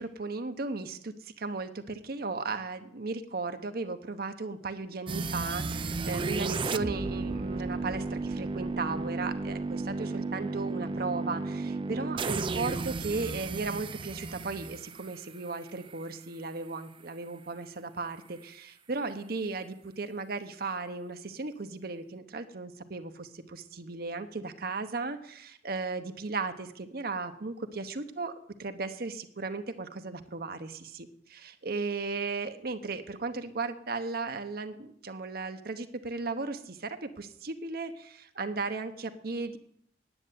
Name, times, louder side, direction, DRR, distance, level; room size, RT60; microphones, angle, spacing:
voice 1, 0.0-39.6, right 3 dB, 60° right, 8 dB, 0.9 m, -36 dB
sound 1, 5.1-16.0, right 3 dB, 30° right, 0.4 m, -34 dB
10.0 x 7.8 x 9.2 m, 0.68 s
head